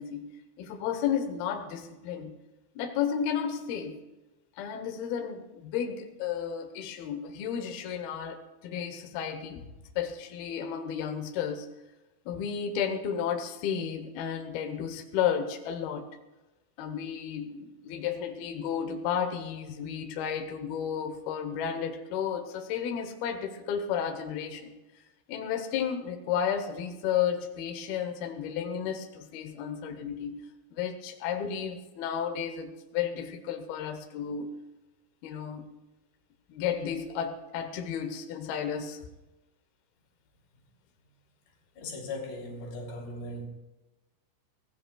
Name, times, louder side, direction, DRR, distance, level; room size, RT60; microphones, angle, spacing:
voice 1, 0.0-2.3 2.8-4.0 4.6-9.6 10.0-11.8 12.3-16.2 16.8-24.7 25.3-30.4 30.7-34.6 35.2-35.7 36.5-39.0, left 8 dB, 80° left, 5 dB, 2.2 m, -33 dB
voice 2, 41.8-43.5, left 2 dB, 50° left, -1 dB, 4.4 m, -38 dB
23.5 x 17.5 x 2.3 m, 1.0 s
omnidirectional pair, 6.0 m